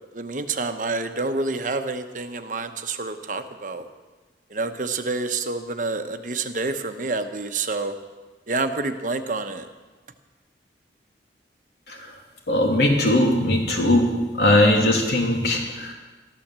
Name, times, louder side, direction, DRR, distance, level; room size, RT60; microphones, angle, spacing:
voice 1, 0.1-3.9 4.5-7.9 8.5-9.7, right 3 dB, 45° right, 7 dB, 0.9 m, -28 dB
voice 2, 12.5-14.1 14.4-15.9, left 1 dB, 70° left, 0 dB, 2.8 m, -19 dB
13.5 x 12.0 x 7.4 m, 1.3 s
head